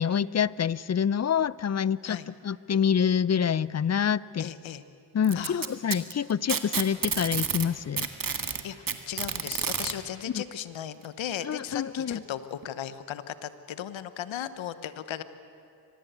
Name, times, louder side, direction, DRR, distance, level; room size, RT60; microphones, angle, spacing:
voice 1, 0.0-4.5 5.1-8.1 10.3-10.4 11.4-12.2, left 8 dB, 35° left, 20 dB, 0.6 m, -27 dB
voice 2, 4.4-4.8 5.3-5.7 8.6-15.2, left 10 dB, 80° left, 13 dB, 1.2 m, -36 dB
Packing tape duct tape, 5.2-7.7 8.0-9.9 11.0-11.1 11.7-11.8 12.6-12.7, right 6 dB, 45° right, 1.8 m, -30 dB
24.0 x 19.5 x 8.2 m, 2.6 s
cardioid pair, 55°, 45 cm